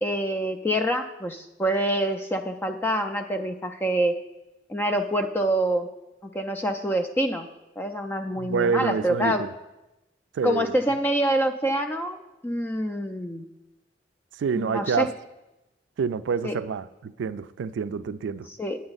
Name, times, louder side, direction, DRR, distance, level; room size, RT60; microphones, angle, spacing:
voice 1, 0.0-4.1 4.7-5.9 6.2-7.5 7.8-9.4 10.4-12.2 12.4-13.4 14.5-15.1 16.4-16.6 18.5-18.8, right 1 dB, 10° left, 6 dB, 0.3 m, -26 dB
voice 2, 8.4-9.5 10.3-10.8 14.4-15.1 16.0-18.5, right 6 dB, 85° right, 14 dB, 0.3 m, -27 dB
9.5 x 8.7 x 4.0 m, 0.98 s
head